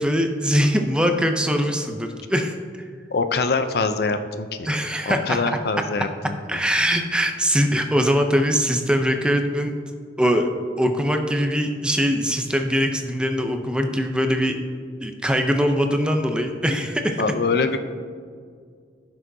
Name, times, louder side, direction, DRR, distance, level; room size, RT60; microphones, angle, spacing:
voice 1, 0.0-2.9 4.6-5.6 6.5-9.8 10.2-10.5 10.8-14.6 15.0-17.2, equal, 5° right, 5 dB, 0.5 m, -22 dB
voice 2, 3.1-4.7 5.1-6.6 17.2-17.8, left 4 dB, 60° left, 9 dB, 0.5 m, -24 dB
15.5 x 6.2 x 2.7 m, 2.1 s
head